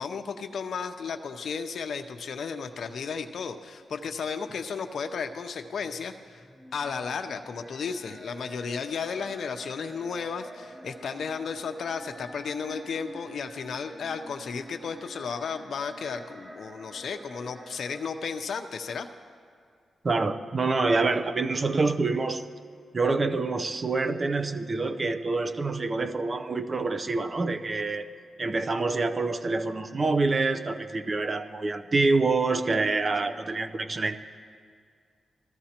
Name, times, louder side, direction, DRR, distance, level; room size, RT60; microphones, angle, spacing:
voice 1, 0.0-6.4 6.7-19.1, left 5 dB, 70° left, 6 dB, 0.6 m, -34 dB
sound 1, 5.7-18.0, right 1 dB, 15° right, 1.3 m, -47 dB
voice 2, 20.0-22.4 22.9-28.1 28.4-34.2, right 3 dB, 40° right, 10 dB, 0.6 m, -26 dB
20.5 x 14.0 x 2.9 m, 2.2 s
cardioid pair, 70°, 0 cm